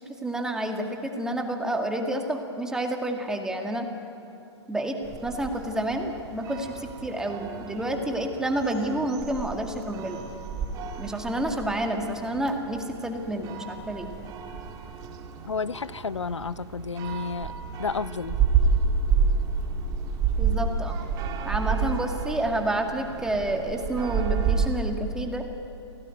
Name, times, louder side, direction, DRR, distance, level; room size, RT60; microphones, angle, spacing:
voice 1, 0.2-3.9 4.7-5.0 5.2-10.2 11.0-14.1 20.4-21.0 21.4-25.5, right 1 dB, 5° right, 2.1 m, -29 dB
sound 1, 5.0-24.7, right 5 dB, 25° right, 2.0 m, -30 dB
voice 2, 15.5-17.5 17.8-18.4, left 5 dB, 85° left, 0.5 m, -31 dB
26.5 x 17.5 x 9.4 m
figure-of-eight pair, 120°, 15 cm